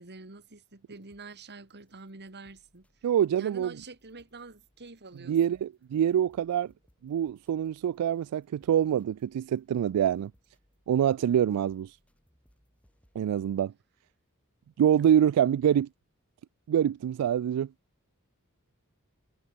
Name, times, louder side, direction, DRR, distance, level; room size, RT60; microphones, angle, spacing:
voice 1, 0.0-2.9 3.4-5.4 14.9-15.2, right 3 dB, 50° right, 2.4 m, -47 dB
sound 1, 0.9-13.5, equal, 5° left, 7.3 m, -69 dB
voice 2, 3.0-3.7 5.3-6.7 7.0-10.3 10.9-12.0 13.2-13.7 14.8-15.9 16.7-17.7, right 9 dB, 90° right, 0.3 m, -25 dB
head